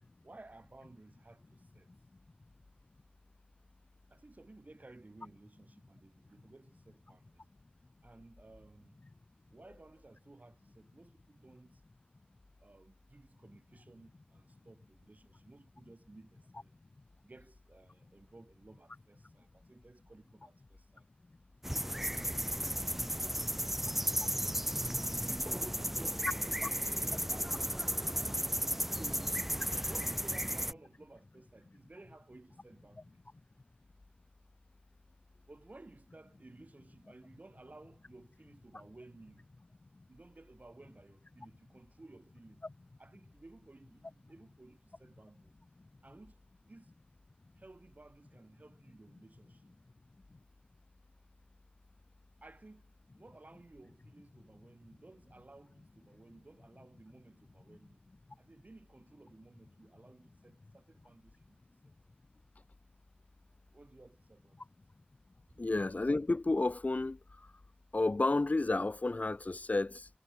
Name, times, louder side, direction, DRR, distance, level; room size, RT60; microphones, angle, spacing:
voice 1, 0.2-1.9 4.1-7.4 8.0-9.0 9.5-11.8 12.6-16.7 17.2-21.1 21.6-24.2 25.0-28.4 28.9-33.2 35.5-39.5 40.1-42.6 43.0-45.6 46.0-46.4 46.6-47.0 47.5-49.8 52.4-58.0 58.4-61.9 63.7-64.6, right 2 dB, 55° right, 6.0 m, -56 dB
sound 1, 21.6-30.7, equal, 5° right, 0.6 m, -34 dB
voice 2, 65.6-67.2 67.9-70.1, left 2 dB, 50° left, 0.7 m, -31 dB
wide cardioid pair, 55°, 3 cm